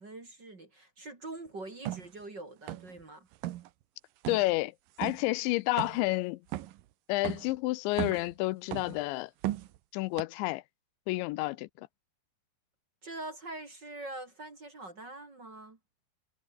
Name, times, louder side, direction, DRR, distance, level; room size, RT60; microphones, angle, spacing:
voice 1, 0.0-3.3 13.0-15.8, right 2 dB, 30° right, 2.9 m, -44 dB
sound 1, 1.9-2.1 2.7-3.0 3.3-3.7 4.2-4.5 5.0-5.2 5.8-6.1 6.5-6.8 7.2-7.5 7.9-8.3 8.7-9.0 9.4-9.8 10.2-10.3, right 15 dB, 70° right, 2.2 m, -36 dB
voice 2, 4.3-4.7 5.0-6.4 7.1-9.3 9.9-10.6 11.1-11.9, left 20 dB, 90° left, 3.0 m, -30 dB
omnidirectional pair, 5.2 m